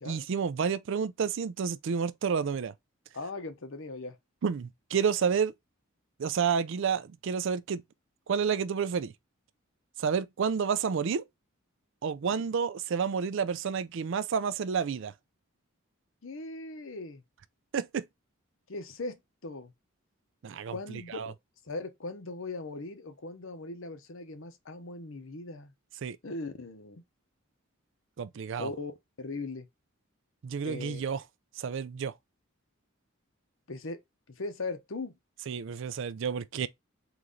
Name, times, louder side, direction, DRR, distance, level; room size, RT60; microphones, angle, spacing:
voice 1, 0.0-2.7 4.4-5.5 6.2-7.8 8.3-9.1 10.0-11.2 12.0-15.1 17.7-18.0 20.4-21.3 26.0-26.2 28.2-28.7 30.4-31.2 31.6-32.1 35.5-36.7, right 6 dB, 60° right, 0.4 m, -30 dB
voice 2, 3.1-4.2 12.3-12.4 16.2-17.2 18.7-19.7 20.7-21.3 21.7-25.7 26.2-27.0 28.6-28.9 29.2-29.7 30.6-31.0 33.7-34.0 34.3-35.1, left 3 dB, 65° left, 0.8 m, -39 dB
4.0 x 3.1 x 3.7 m
head